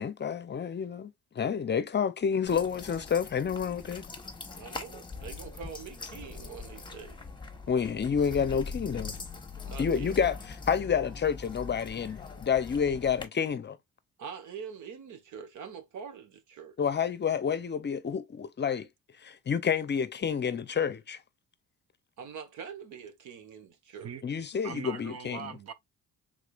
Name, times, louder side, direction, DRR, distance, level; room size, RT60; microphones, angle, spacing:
voice 1, 0.0-4.1 7.7-9.1 9.8-10.4 10.7-13.8 16.8-18.9 19.2-21.2 24.2-25.5, left 7 dB, 35° left, 0.6 m, -29 dB
sound 1, 2.5-13.2, left 4 dB, 15° left, 1.2 m, -42 dB
voice 2, 4.5-7.2 9.6-10.1 14.2-16.8 22.2-24.1, right 7 dB, 75° right, 1.3 m, -44 dB
voice 3, 24.6-25.7, right 7 dB, 55° right, 0.8 m, -41 dB
4.8 x 3.7 x 2.4 m
cardioid pair, 90°, 30 cm